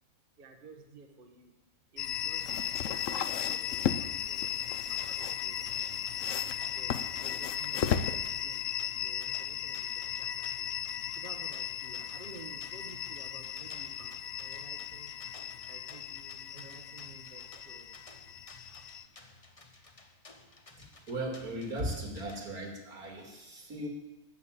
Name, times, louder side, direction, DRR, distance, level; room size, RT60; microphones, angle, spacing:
voice 1, 0.4-1.5 1.9-6.0 6.8-8.6 8.9-10.7 11.1-15.1 15.7-18.0 18.7-18.9, right 4 dB, 40° right, 3 dB, 1.3 m, -53 dB
sound 1, 2.0-19.0, left 10 dB, 90° left, 0.5 m, -37 dB
sound 2, 2.1-8.6, left 8 dB, 65° left, 1.0 m, -36 dB
sound 3, 5.0-22.4, left 2 dB, 25° left, 1.0 m, -56 dB
voice 2, 20.8-23.9, right 1 dB, 75° right, 0 dB, 2.9 m, -37 dB
13.0 x 6.5 x 8.9 m, 0.97 s
omnidirectional pair, 1.6 m